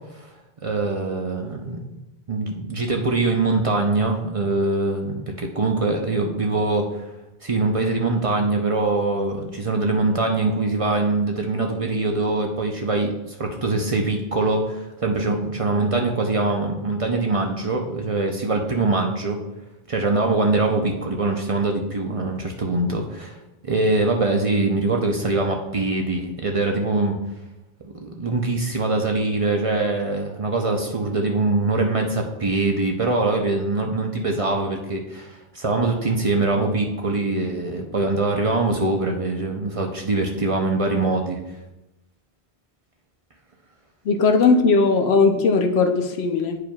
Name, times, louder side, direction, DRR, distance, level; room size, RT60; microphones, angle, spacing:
voice 1, 0.6-1.9 2.3-7.0 7.4-19.4 19.9-23.4 23.6-27.2 27.8-41.4, right 2 dB, 40° right, 2 dB, 0.7 m, -23 dB
voice 2, 44.1-46.6, left 4 dB, 80° left, 5 dB, 1.0 m, -18 dB
10.5 x 4.8 x 2.3 m, 0.96 s
omnidirectional pair, 1.0 m